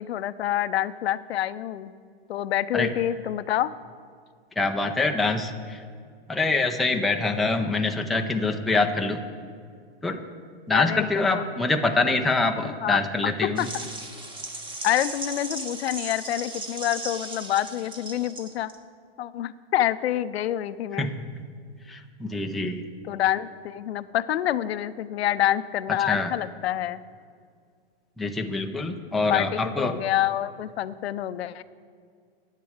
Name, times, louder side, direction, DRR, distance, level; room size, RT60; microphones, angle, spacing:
voice 1, 0.0-1.9 2.3-3.7 10.7-11.5 12.6-13.3 13.6-13.7 14.8-18.7 19.2-21.1 23.0-27.0 29.3-31.6, left 12 dB, 80° left, 14 dB, 0.6 m, -27 dB
voice 2, 4.6-5.8 6.3-9.2 10.0-10.2 10.7-13.6 21.0-21.1 21.9-22.8 26.1-26.3 28.2-29.9, left 3 dB, ahead, 3 dB, 0.4 m, -25 dB
sound 1, 13.6-18.8, right 2 dB, 15° right, 1.2 m, -37 dB
10.5 x 8.3 x 7.8 m, 2.1 s
hypercardioid pair, 130°, 32 cm